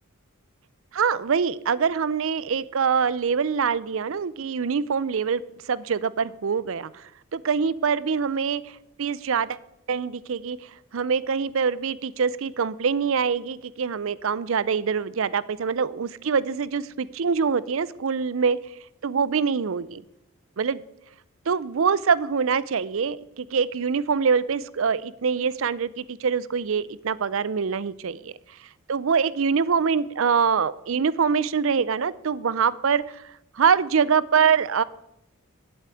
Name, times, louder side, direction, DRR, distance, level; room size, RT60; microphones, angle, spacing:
voice 1, 0.9-5.4 5.7-7.0 7.3-9.6 9.9-10.6 10.9-18.6 19.0-20.0 20.6-20.8 21.5-28.3 28.9-33.2 33.6-34.8, right 6 dB, 65° right, 19 dB, 0.5 m, -24 dB
8.3 x 8.0 x 9.0 m, 0.84 s
head